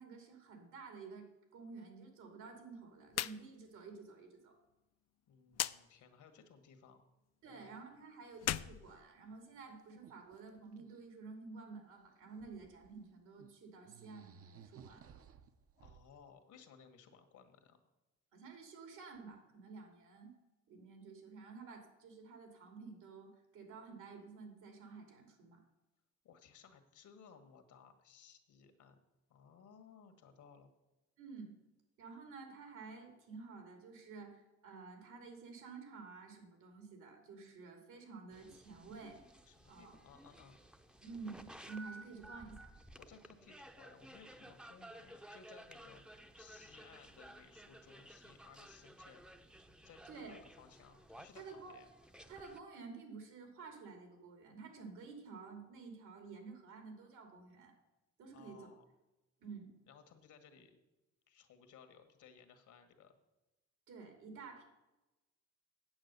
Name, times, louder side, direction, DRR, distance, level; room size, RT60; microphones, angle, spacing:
voice 1, 0.0-4.5 7.4-15.2 18.3-20.3 20.7-25.6 31.2-31.5 32.0-39.2 39.6-39.9 41.0-42.7 50.1-50.3 51.4-51.7 52.3-57.7 58.2-58.7 59.4-59.7 63.9-64.6, right 4 dB, 80° right, 4 dB, 2.7 m, -51 dB
sound 1, 3.1-3.4 3.7-3.8 5.5-5.8 8.3-9.6, left 13 dB, 60° left, 0.5 m, -38 dB
voice 2, 5.3-7.0 7.4-7.7 15.8-17.8 26.2-29.0 29.3-30.7 39.5-40.6 43.0-49.2 49.8-51.9 58.3-58.8 59.9-60.8 61.3-63.1, left 6 dB, 75° left, 7 dB, 1.6 m, -60 dB
sound 2, 9.0-9.2 9.5-11.0 12.0-13.0 13.4-13.5 13.8-16.2, right 7 dB, 50° right, 0.7 m, -59 dB
sound 3, 38.3-52.6, right 1 dB, 5° right, 0.6 m, -56 dB
8.8 x 7.6 x 6.7 m, 1.0 s
cardioid pair, 90°, 30 cm